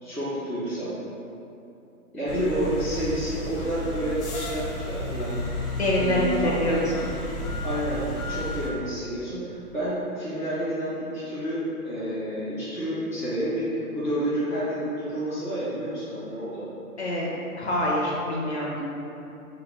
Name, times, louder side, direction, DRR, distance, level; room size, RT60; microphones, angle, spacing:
voice 1, 0.0-0.9 2.1-5.4 5.9-6.8 7.6-16.7, right 1 dB, 10° right, -18 dB, 0.6 m, -29 dB
sound 1, 2.3-8.7, left 1 dB, 90° left, 1.0 m, -32 dB
voice 2, 5.7-7.0 17.0-17.3 17.6-18.8, left 1 dB, 50° left, -4 dB, 0.5 m, -25 dB
2.9 x 2.6 x 3.2 m, 2.8 s
hypercardioid pair, 170°, 45 cm